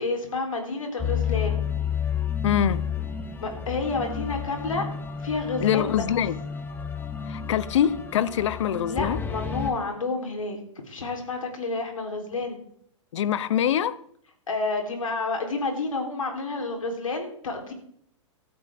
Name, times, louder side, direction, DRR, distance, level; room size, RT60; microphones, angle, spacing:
voice 1, 0.0-1.6 3.4-4.8 5.2-6.0 8.9-10.6 10.9-12.6 14.5-17.7, left 3 dB, 85° left, 3.9 m, -29 dB
sound 1, 1.0-9.7, left 7 dB, 10° left, 1.3 m, -31 dB
voice 2, 2.4-2.9 5.6-6.3 7.3-9.2 13.1-14.0, left 9 dB, 65° left, 0.9 m, -24 dB
16.5 x 13.0 x 3.7 m
hypercardioid pair, 115°, 17 cm